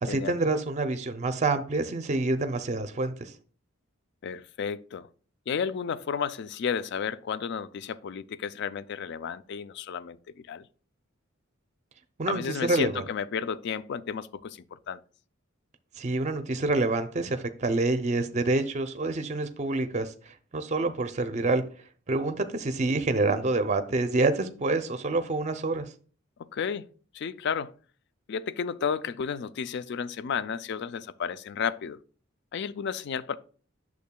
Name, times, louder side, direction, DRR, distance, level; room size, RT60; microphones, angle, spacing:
voice 1, 0.0-3.3 12.2-13.0 16.0-21.6 22.1-25.9, right 2 dB, 35° right, 0.5 m, -27 dB
voice 2, 4.2-5.1 5.5-10.7 12.3-15.0 26.4-26.9 27.1-27.7 28.3-32.0 32.5-33.4, left 7 dB, 55° left, 0.4 m, -32 dB
8.4 x 6.4 x 2.2 m
head